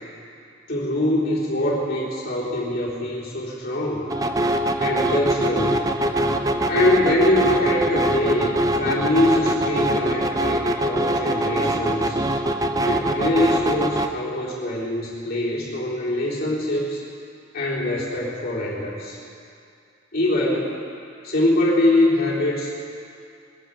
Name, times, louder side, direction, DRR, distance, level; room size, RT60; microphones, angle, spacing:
voice 1, 0.7-4.1 4.8-5.8 6.7-12.2 12.8-17.0 17.5-19.2 20.1-20.8 21.2-22.7, left 1 dB, 50° left, -6 dB, 3.8 m, -23 dB
sound 1, 4.1-14.1, right 1 dB, 15° right, 0.6 m, -23 dB
23.5 x 11.5 x 5.4 m, 2.5 s
head